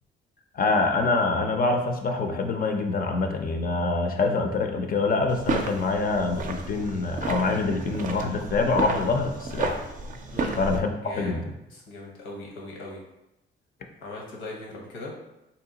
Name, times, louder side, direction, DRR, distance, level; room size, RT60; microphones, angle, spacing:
voice 1, 0.5-9.8 10.6-11.4, left 3 dB, 45° left, 4 dB, 0.5 m, -25 dB
sound 1, 5.3-10.8, right 3 dB, 40° right, 0.4 m, -32 dB
voice 2, 11.0-13.0 14.0-15.1, left 2 dB, 90° left, -2 dB, 0.9 m, -39 dB
2.8 x 2.2 x 3.8 m, 0.91 s
cardioid pair, 90°, 20 cm